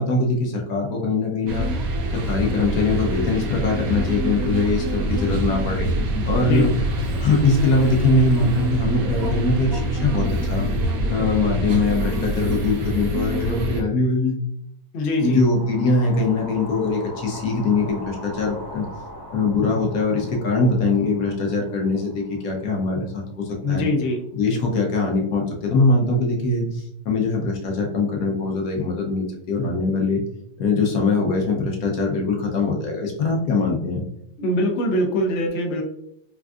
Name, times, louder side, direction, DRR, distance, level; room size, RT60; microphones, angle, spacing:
voice 1, 0.0-1.7 2.1-5.9 6.3-6.7 7.2-10.7 11.1-14.4 15.2-18.8 19.3-23.9 24.3-30.2 30.6-34.0, left 3 dB, 65° left, 0 dB, 1.1 m, -22 dB
sound 1, 1.5-13.8, equal, 65° right, 0.9 m, -25 dB
voice 2, 14.9-15.4 23.6-24.2 34.4-35.8, left 1 dB, 85° left, 2 dB, 0.6 m, -22 dB
sound 2, 15.1-23.3, equal, 15° left, 0.7 m, -40 dB
3.5 x 2.5 x 2.3 m, 0.76 s
omnidirectional pair, 1.9 m